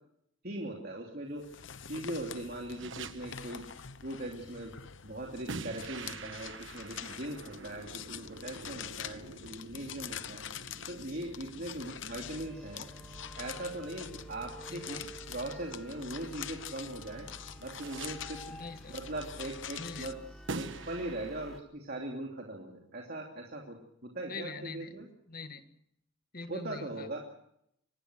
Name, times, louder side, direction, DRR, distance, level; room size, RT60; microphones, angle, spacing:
voice 1, 0.4-1.4 1.9-3.6 4.0-4.8 5.0-10.4 10.8-12.9 13.4-17.3 17.6-18.4 18.9-20.2 20.5-23.8 24.0-25.1 26.5-27.2, right 1 dB, 50° right, 0 dB, 3.0 m, -40 dB
sound 1, 1.4-20.1, left 8 dB, 60° left, 0.9 m, -45 dB
sound 2, 2.7-3.6 5.5-16.4 17.7-18.5 20.5-21.6, right 3 dB, 65° right, 1.3 m, -46 dB
sound 3, 12.1-21.6, right 1 dB, 5° left, 2.5 m, -50 dB
voice 2, 14.7-15.1 18.5-18.9 19.8-20.1 24.3-24.9 25.3-25.6 26.3-27.1, left 3 dB, 45° left, 8 dB, 2.0 m, -43 dB
24.5 x 19.5 x 6.3 m, 0.74 s
head